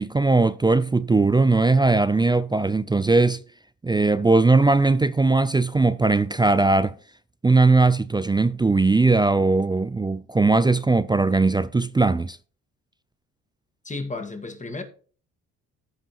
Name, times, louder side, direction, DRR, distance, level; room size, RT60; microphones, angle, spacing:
voice 1, 0.0-3.4 3.8-7.0 7.4-12.4, right 3 dB, 15° right, 0.4 m, -19 dB
voice 2, 13.8-14.8, left 3 dB, 20° left, 2.0 m, -33 dB
15.0 x 5.1 x 3.0 m
supercardioid pair, 65°, 33 cm